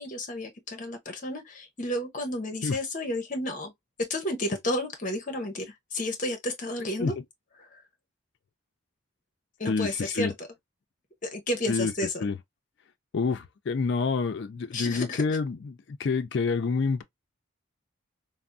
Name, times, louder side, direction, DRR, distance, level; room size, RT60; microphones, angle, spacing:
voice 1, 0.0-3.7 4.1-7.1 7.6-7.8 9.6-10.5 11.2-12.3 14.7-15.4, left 1 dB, 40° left, 0.7 m, -32 dB
voice 2, 9.7-10.3 11.7-11.9 12.2-12.4 13.1-15.6 16.0-17.0, left 4 dB, 55° left, 0.4 m, -27 dB
3.4 x 2.0 x 2.4 m
head